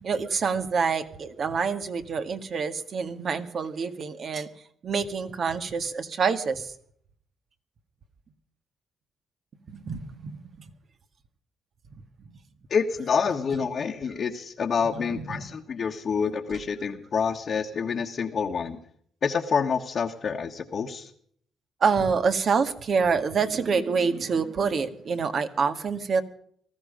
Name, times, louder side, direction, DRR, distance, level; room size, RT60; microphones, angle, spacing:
voice 1, 0.0-4.5 4.8-6.7 9.7-10.7 15.0-15.4 21.8-26.2, right 5 dB, 50° right, 9 dB, 1.9 m, -27 dB
voice 2, 12.7-18.8 19.2-21.1, left 6 dB, 50° left, 0 dB, 1.5 m, -27 dB
19.0 x 14.5 x 5.2 m, 0.62 s
cardioid pair, 90°, 0 cm